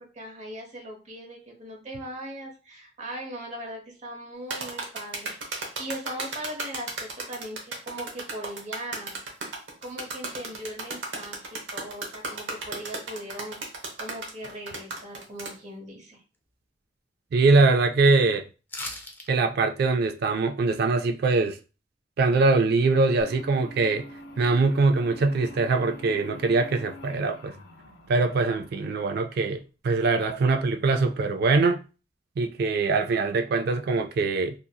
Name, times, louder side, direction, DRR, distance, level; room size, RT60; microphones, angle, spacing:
voice 1, 0.0-9.2 9.8-16.2, right 1 dB, 40° right, 0.9 m, -39 dB
sound 1, 4.5-15.5, right 3 dB, 80° right, 0.8 m, -35 dB
voice 2, 17.3-18.4 19.3-21.6 22.2-24.1 24.4-27.5 28.1-31.8 32.4-34.5, right 3 dB, 60° right, 0.3 m, -23 dB
sound 2, 18.7-19.3 19.6-19.7, left 2 dB, 10° left, 0.4 m, -36 dB
sound 3, 23.2-29.6, left 1 dB, 60° left, 0.6 m, -46 dB
2.7 x 2.6 x 2.2 m
head